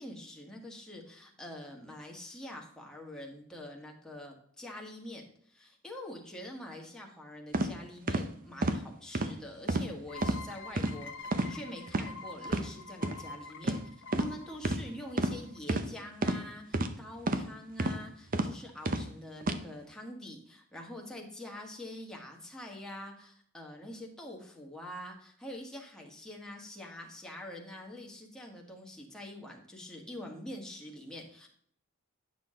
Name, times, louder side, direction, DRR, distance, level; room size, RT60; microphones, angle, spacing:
voice 1, 0.0-11.1 11.4-13.8 14.2-31.5, left 1 dB, 5° left, -1 dB, 1.6 m, -45 dB
sound 1, 7.5-7.7 8.1-8.2 8.6-8.8 9.1-9.3 9.7-9.9 10.2-10.4 10.8-10.9 11.3-11.5 11.9-12.1 12.5-12.6 13.0-13.2 13.6-13.8 14.1-14.3 14.6-14.8 15.2-15.3 15.7-15.9 16.2-16.4 16.7-16.9 17.3-17.5 17.8-18.0 18.3-18.5 18.9-19.0 19.4-19.6, right 2 dB, 40° right, 0.8 m, -29 dB
sound 2, 10.1-15.6, left 3 dB, 55° left, 1.0 m, -47 dB
9.5 x 6.3 x 3.7 m, 0.64 s
head